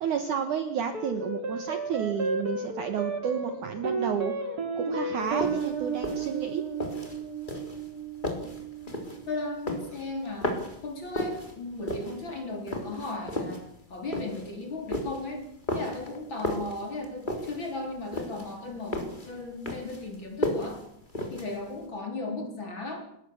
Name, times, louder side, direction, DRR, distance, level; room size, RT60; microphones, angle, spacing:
voice 1, 0.0-4.3 4.8-6.6, right 7 dB, 60° right, 7 dB, 2.3 m, -31 dB
sound 1, 0.9-9.6, right 4 dB, 25° right, 2.4 m, -33 dB
sound 2, 5.2-21.8, left 1 dB, 10° left, 3.2 m, -35 dB
voice 2, 9.3-20.8 21.3-23.1, left 2 dB, 30° left, 3 dB, 4.0 m, -36 dB
21.0 x 18.5 x 7.1 m, 0.75 s
omnidirectional pair, 4.8 m